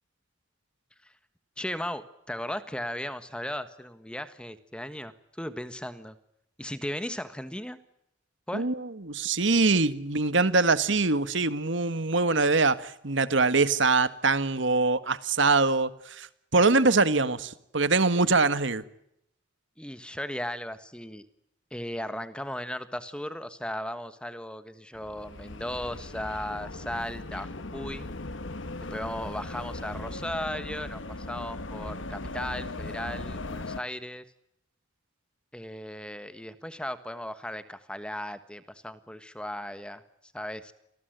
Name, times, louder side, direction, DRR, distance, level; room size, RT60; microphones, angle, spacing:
voice 1, 1.6-6.1 6.6-7.8 8.5-8.7 19.8-21.2 21.7-28.0 28.9-34.2 35.5-40.0 40.3-40.7, left 1 dB, 5° left, 11 dB, 1.4 m, -36 dB
voice 2, 8.5-16.3 16.5-18.8, right 3 dB, 75° right, 13 dB, 1.6 m, -23 dB
sound 1, 24.9-33.8, left 2 dB, 80° left, 1.3 m, -38 dB
28.0 x 20.0 x 9.2 m, 0.80 s
head